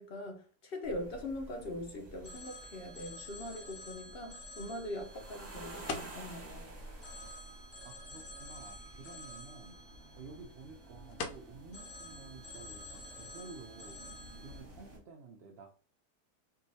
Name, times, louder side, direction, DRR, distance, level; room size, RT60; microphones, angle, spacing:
voice 1, 0.0-6.7, left 1 dB, 50° left, 3 dB, 0.7 m, -42 dB
sound 1, 0.8-15.0, right 1 dB, 30° right, 0.9 m, -51 dB
sound 2, 1.8-15.0, left 4 dB, 75° left, 1.0 m, -51 dB
Telephone, 2.2-6.5 7.0-11.2 11.7-14.6, left 1 dB, 10° left, 1.1 m, -51 dB
voice 2, 7.8-9.8 10.2-14.0 14.4-15.7, right 4 dB, 70° right, 2 dB, 0.5 m, -52 dB
4.5 x 2.4 x 2.7 m, 0.40 s
omnidirectional pair, 1.7 m